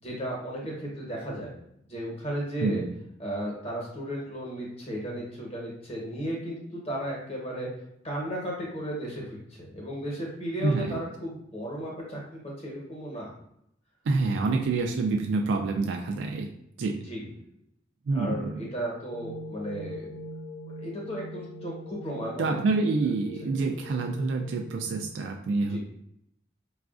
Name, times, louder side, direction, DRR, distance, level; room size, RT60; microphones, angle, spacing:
voice 1, 0.0-1.5 1.8-2.8 3.2-7.7 8.0-13.3 17.1-17.3 18.1-20.1 20.8-22.8 25.7-25.8, right 1 dB, 35° left, -3 dB, 1.0 m, -35 dB
voice 2, 2.6-3.0 10.6-11.0 14.0-16.5 16.8-17.1 18.1-18.7 22.4-25.8, right 3 dB, 85° right, 2 dB, 0.3 m, -27 dB
sound 1, 19.1-25.1, equal, 65° left, 0.4 m, -42 dB
4.7 x 2.3 x 2.4 m, 0.75 s
head